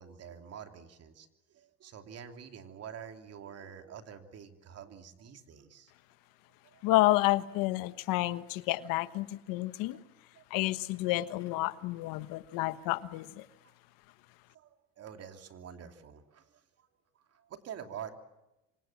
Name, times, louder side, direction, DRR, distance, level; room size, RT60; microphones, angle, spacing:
voice 1, 0.0-5.9 6.6-6.8 10.3-10.4 14.5-16.9 17.1-18.2, right 8 dB, 45° right, 6 dB, 2.9 m, -47 dB
voice 2, 6.8-10.0 10.5-13.4, left 18 dB, 75° left, 13 dB, 1.3 m, -30 dB
27.5 x 25.5 x 7.4 m, 0.98 s
cardioid pair, 120°, 34 cm